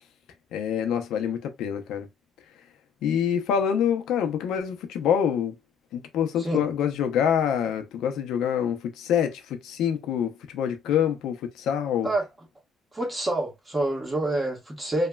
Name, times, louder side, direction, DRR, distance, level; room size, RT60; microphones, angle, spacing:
voice 1, 0.5-2.1 3.0-5.5 5.9-12.1, left 8 dB, 85° left, 0.5 m, -26 dB
voice 2, 12.9-15.1, right 1 dB, 20° right, 1.2 m, -27 dB
3.1 x 2.2 x 2.2 m
cardioid pair, 90°, 0 cm